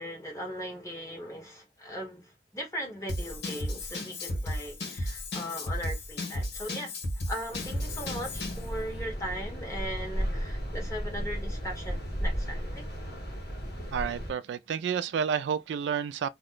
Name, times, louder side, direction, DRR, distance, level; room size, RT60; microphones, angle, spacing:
voice 1, 0.0-6.9 7.3-12.8, equal, 15° left, 1.1 m, -38 dB
Drum kit / Drum, 3.1-8.7, left 1 dB, 80° left, 1.2 m, -34 dB
sound 1, 7.5-14.3, equal, 60° left, 1.5 m, -35 dB
voice 2, 13.9-16.3, right 7 dB, 90° right, 0.3 m, -30 dB
2.9 x 2.1 x 3.7 m
head